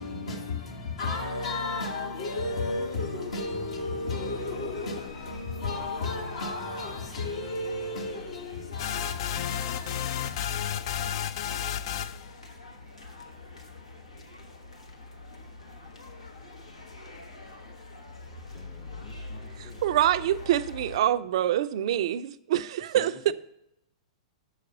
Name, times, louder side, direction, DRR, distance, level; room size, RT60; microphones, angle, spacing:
voice 1, 0.0-12.8, left 3 dB, 70° left, 1.9 m, -34 dB
sound 1, 2.3-21.0, left 2 dB, 90° left, 1.2 m, -45 dB
sound 2, 8.8-12.3, left 9 dB, 55° left, 0.4 m, -32 dB
voice 2, 18.5-19.8 22.8-23.3, left 5 dB, 35° left, 0.8 m, -47 dB
voice 3, 19.6-23.3, right 12 dB, 60° right, 0.4 m, -26 dB
6.4 x 5.0 x 6.9 m
hypercardioid pair, 105°, 3 cm